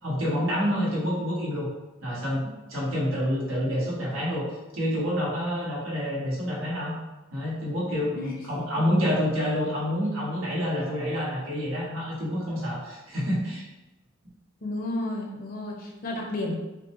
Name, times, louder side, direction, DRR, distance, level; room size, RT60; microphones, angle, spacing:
voice 1, 0.0-1.7 2.0-4.4 4.7-6.9 7.3-13.7, equal, 85° right, -6 dB, 1.4 m, -28 dB
voice 2, 14.6-16.6, left 2 dB, 45° left, 0 dB, 0.7 m, -32 dB
4.4 x 2.2 x 2.9 m, 1.0 s
head